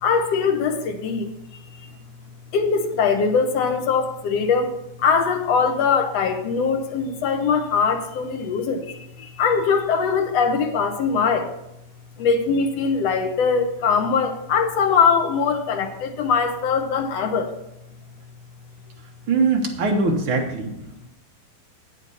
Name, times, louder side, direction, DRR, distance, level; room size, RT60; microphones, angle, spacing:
voice 1, 0.0-1.3 1.7-1.9 2.5-11.5 12.2-17.5, left 5 dB, 65° left, 5 dB, 1.7 m, -22 dB
voice 2, 19.3-20.7, right 4 dB, 60° right, 2 dB, 1.4 m, -21 dB
8.7 x 8.1 x 5.6 m, 0.86 s
omnidirectional pair, 4.0 m